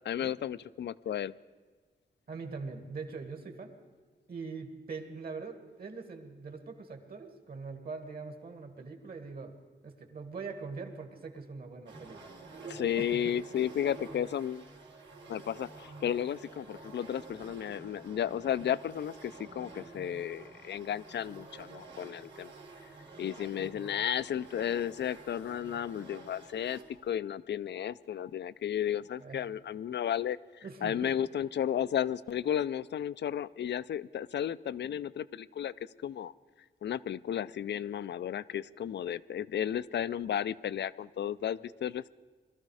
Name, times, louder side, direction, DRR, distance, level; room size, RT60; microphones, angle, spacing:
voice 1, 0.0-1.3 12.7-14.7 15.3-22.5 23.2-35.7 36.0-36.3 36.8-42.1, left 9 dB, 75° left, 18 dB, 0.4 m, -33 dB
voice 2, 2.3-3.8 4.3-9.5 9.8-12.2 12.4-13.3 29.2-29.4 30.6-31.1, right 4 dB, 55° right, 6 dB, 1.9 m, -42 dB
sound 1, 11.9-27.0, right 3 dB, 90° right, 3.5 m, -50 dB
21.0 x 13.5 x 4.8 m, 1.5 s
wide cardioid pair, 135°, 18 cm